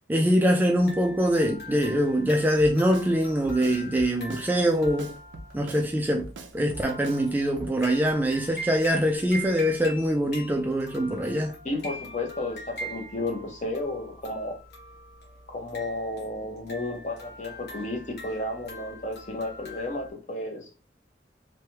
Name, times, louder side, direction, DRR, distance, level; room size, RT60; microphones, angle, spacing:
voice 1, 0.1-5.1 5.5-6.3 6.5-11.5, equal, 10° right, 0.3 m, -23 dB
sound 1, 0.7-20.1, right 1 dB, 65° left, 1.3 m, -43 dB
Drum kit, 2.6-3.1 3.4-4.5 4.8-5.9 6.2-7.2 7.6-7.7, right 2 dB, 85° right, 0.5 m, -41 dB
voice 2, 11.6-14.6 15.5-20.7, left 2 dB, 40° left, 0.8 m, -32 dB
3.2 x 2.2 x 2.8 m
head